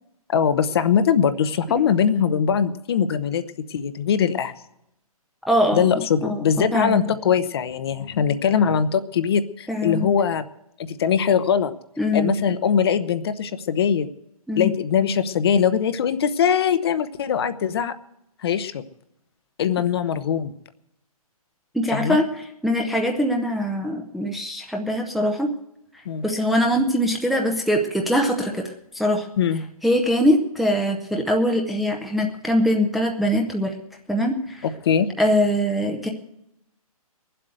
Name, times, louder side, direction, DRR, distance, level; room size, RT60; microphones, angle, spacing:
voice 1, 0.3-3.4 3.7-4.5 5.7-10.4 10.9-11.7 12.1-14.1 14.6-17.9 18.4-18.8 19.6-20.5 21.9-22.2 26.1-26.2 29.4-29.6 34.8-35.1, left 7 dB, 40° left, 11 dB, 0.9 m, -21 dB
voice 2, 5.5-5.9 6.2-7.2 9.7-10.1 12.0-12.3 14.5-14.7 21.7-22.3 22.6-25.5 26.2-28.6 28.9-29.3 29.8-33.7 34.1-34.6 35.2-36.1, equal, ahead, 1 dB, 0.7 m, -22 dB
20.5 x 7.8 x 7.9 m, 0.83 s
hypercardioid pair, 150°, 19 cm